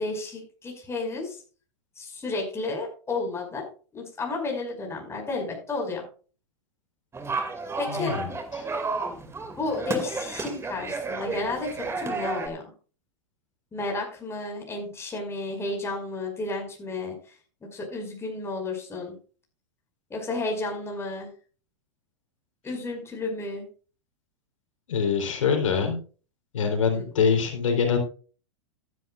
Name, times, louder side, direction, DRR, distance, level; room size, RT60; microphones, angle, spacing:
voice 1, 0.0-1.4 2.0-3.6 3.9-6.0 7.8-8.1 9.6-12.6 13.7-17.4 17.7-19.2 20.1-21.3 22.6-23.7 26.9-27.0, left 3 dB, 15° left, 1 dB, 5.4 m, -32 dB
sound 1, 7.1-12.5, right 3 dB, 15° right, 2.5 m, -32 dB
voice 2, 8.0-8.3 24.9-26.0 26.5-28.0, left 6 dB, 85° left, 3 dB, 3.7 m, -24 dB
15.0 x 10.5 x 2.5 m, 0.38 s
hypercardioid pair, 120°, 16 cm